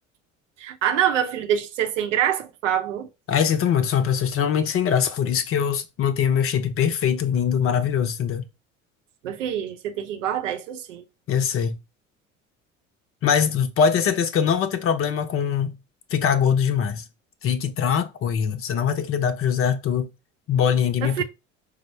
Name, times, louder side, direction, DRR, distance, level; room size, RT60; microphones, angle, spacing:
voice 1, 0.6-3.1 9.2-11.0 21.0-21.2, right 9 dB, 70° right, 0.7 m, -25 dB
voice 2, 3.3-8.5 11.3-11.8 13.2-15.7 16.1-17.0 17.4-20.1 20.5-21.2, left 7 dB, 35° left, 0.6 m, -22 dB
4.8 x 2.0 x 4.3 m
figure-of-eight pair, 60°, 39 cm